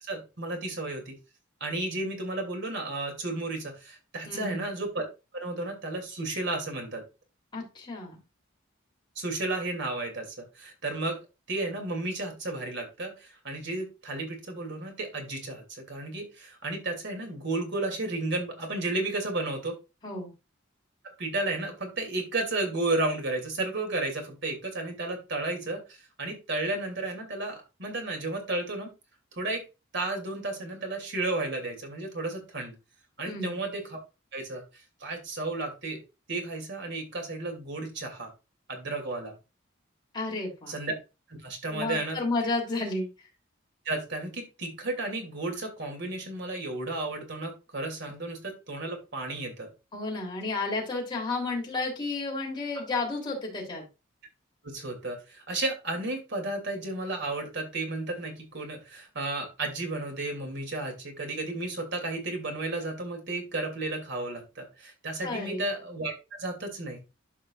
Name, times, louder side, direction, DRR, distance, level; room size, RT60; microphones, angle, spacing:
voice 1, 0.0-1.2 1.6-5.0 5.3-7.0 9.2-11.2 11.5-19.8 21.2-28.9 29.3-29.7 29.9-32.7 33.2-34.0 34.3-34.6 35.0-36.0 36.3-38.3 38.7-39.3 40.7-40.9 41.3-42.2 43.8-49.7 54.6-67.0, right 2 dB, 60° right, 3 dB, 2.7 m, -33 dB
voice 2, 4.3-4.6 7.5-8.2 20.0-20.3 33.3-33.6 40.1-40.7 41.7-43.1 49.9-53.8 65.2-65.6, left 3 dB, 25° left, -2 dB, 3.2 m, -32 dB
12.0 x 5.4 x 2.4 m, 0.28 s
head